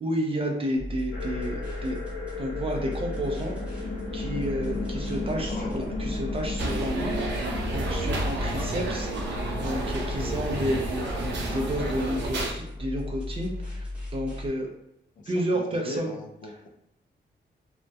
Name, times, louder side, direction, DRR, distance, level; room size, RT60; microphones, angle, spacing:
voice 1, 0.0-2.0 2.4-7.1 7.4-14.7 15.3-16.1, equal, 30° right, 0 dB, 0.4 m, -31 dB
sound 1, 0.8-14.5, left 2 dB, 5° right, 0.7 m, -36 dB
sound 2, 1.1-12.1, left 2 dB, 80° left, 0.8 m, -36 dB
voice 2, 5.3-5.7 15.2-16.7, left 2 dB, 45° left, 1 dB, 0.4 m, -39 dB
sound 3, 6.6-12.5, right 2 dB, 90° right, 0.5 m, -31 dB
2.2 x 2.1 x 2.7 m, 0.83 s
wide cardioid pair, 160°, 18 cm